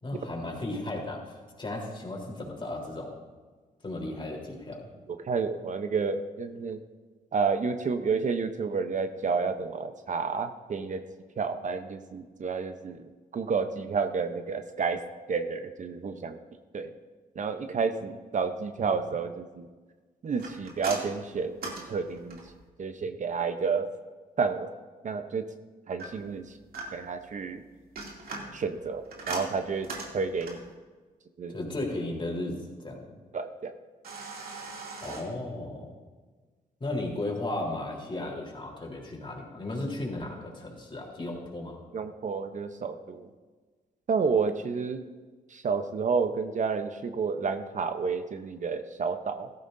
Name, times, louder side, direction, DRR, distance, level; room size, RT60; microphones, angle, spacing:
voice 1, 0.0-3.1 3.8-4.9 31.5-32.6 32.8-33.0 35.0-35.9 36.8-41.8, left 2 dB, 30° left, -1 dB, 3.6 m, -35 dB
voice 2, 5.2-6.8 7.3-11.0 11.4-13.0 13.3-15.0 15.3-16.4 16.7-16.9 17.4-19.7 20.2-22.4 22.8-23.9 24.4-24.7 25.0-25.5 25.9-26.5 26.9-27.6 28.5-30.6 31.4-31.6 33.3-33.7 41.9-43.3 44.1-45.0 45.5-49.5, right 5 dB, 50° right, 8 dB, 0.7 m, -30 dB
sound 1, 20.4-22.6 26.0-27.2 27.7-30.7 34.0-35.2, right 3 dB, 70° right, 2.6 m, -40 dB
15.5 x 13.5 x 2.6 m, 1.4 s
cardioid pair, 80°, 16 cm